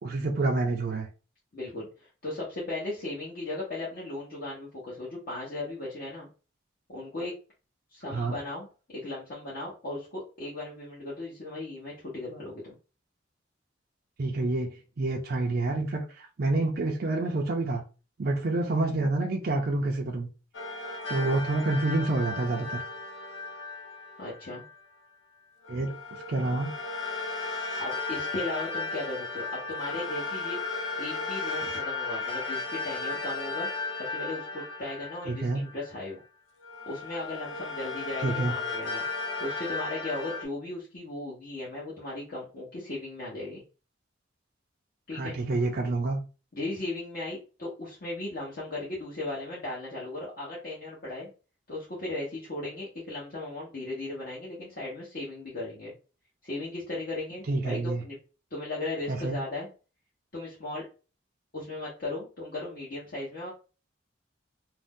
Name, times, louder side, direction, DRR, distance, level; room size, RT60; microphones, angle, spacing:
voice 1, 0.0-1.1 8.1-8.4 14.2-17.8 18.2-20.3 21.1-22.8 25.7-25.9 26.3-26.7 35.3-35.6 38.2-38.5 45.1-46.2 57.5-58.0 59.1-59.4, right 2 dB, 50° right, 0.4 m, -28 dB
voice 2, 1.5-6.3 6.9-7.3 7.9-12.7 24.2-24.6 27.8-30.6 31.0-33.7 34.0-36.2 36.9-39.0 39.4-43.6 45.1-45.4 46.5-51.3 51.7-55.9 56.4-58.2 58.5-59.7 60.3-60.9 61.5-63.5, left 2 dB, 50° left, 0.9 m, -37 dB
sound 1, 20.5-24.7 25.6-36.1 36.6-40.4, left 3 dB, 80° left, 0.6 m, -35 dB
2.6 x 2.1 x 3.5 m
head